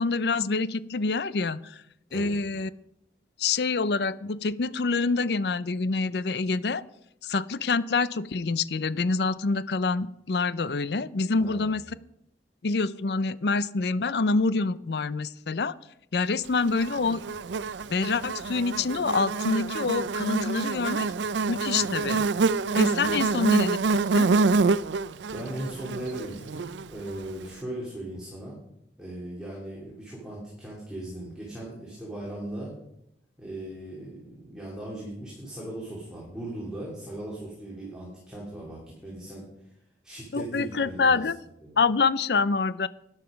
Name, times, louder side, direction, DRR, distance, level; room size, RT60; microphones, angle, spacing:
voice 1, 0.0-1.8 2.1-2.7 3.4-6.8 7.2-11.8 12.6-15.7 16.1-17.2 17.9-21.1 21.5-22.3 22.7-24.4 40.3-41.3 41.8-42.9, left 4 dB, 65° left, 17 dB, 0.5 m, -26 dB
voice 2, 11.4-11.7 21.8-22.0 23.0-23.2 25.3-28.6 29.0-32.7 33.4-39.4 40.0-41.3 41.6-41.8, right 1 dB, 5° right, -5 dB, 3.2 m, -38 dB
Buzz, 16.8-27.2, right 4 dB, 90° right, 0.5 m, -26 dB
12.5 x 10.0 x 5.2 m, 0.78 s
head